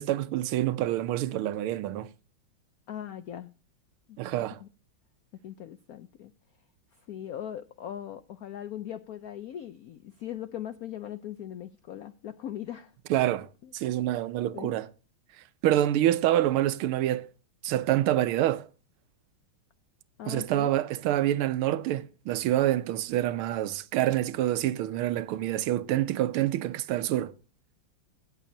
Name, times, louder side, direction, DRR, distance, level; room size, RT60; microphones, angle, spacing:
voice 1, 0.0-2.1 4.2-4.6 13.1-13.5 13.7-14.9 15.6-17.3 17.6-18.7 20.3-27.3, right 13 dB, 85° right, 1.6 m, -27 dB
voice 2, 2.9-3.5 4.1-4.7 5.4-6.3 6.9-12.9 13.6-13.7 14.5-14.7 20.2-20.7, left 10 dB, 80° left, 0.8 m, -40 dB
17.5 x 7.3 x 2.7 m
omnidirectional pair, 2.3 m